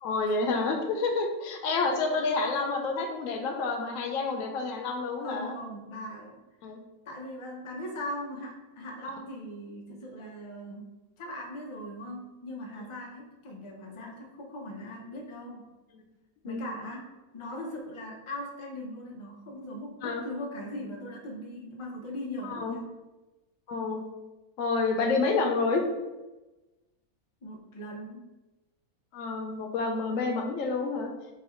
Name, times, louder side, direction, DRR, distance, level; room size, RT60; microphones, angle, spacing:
voice 1, 0.0-5.5 6.6-6.8 16.4-16.6 20.0-20.2 22.4-22.8 23.7-24.0 24.6-25.8 29.1-31.1, left 3 dB, 65° left, 3 dB, 1.0 m, -29 dB
voice 2, 5.2-6.4 7.1-15.6 16.4-22.8 27.4-28.2, left 1 dB, 40° left, -1 dB, 0.4 m, -40 dB
3.8 x 2.8 x 4.2 m, 1.1 s
omnidirectional pair, 1.6 m